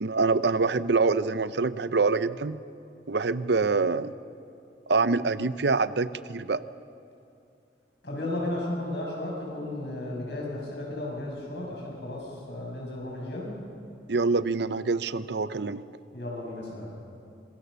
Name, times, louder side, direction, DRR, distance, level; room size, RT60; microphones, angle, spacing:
voice 1, 0.0-2.6 3.1-4.1 4.9-6.6 14.1-15.8, right 4 dB, 70° right, 14 dB, 0.7 m, -25 dB
voice 2, 8.0-13.6 16.1-16.9, left 1 dB, 65° left, -2 dB, 7.9 m, -34 dB
26.5 x 23.5 x 6.9 m, 2.6 s
head